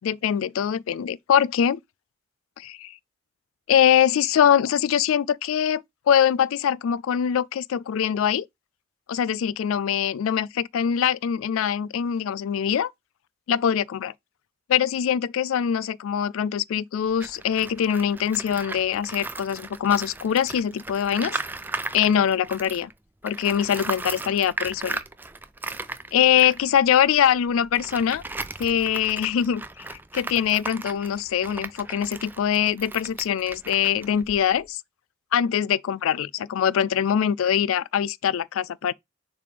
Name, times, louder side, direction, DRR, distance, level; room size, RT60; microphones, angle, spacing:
voice 1, 0.0-1.8 2.6-2.9 3.7-8.5 9.1-12.9 13.5-14.1 14.7-21.4 21.9-22.9 23.2-25.0 26.1-28.2 28.6-29.6 29.9-34.8 35.3-38.9, left 9 dB, 85° left, 0.3 m, -23 dB
Tools, 17.1-22.9 23.2-34.7, right 3 dB, 10° right, 0.3 m, -37 dB
6.7 x 3.4 x 5.0 m
head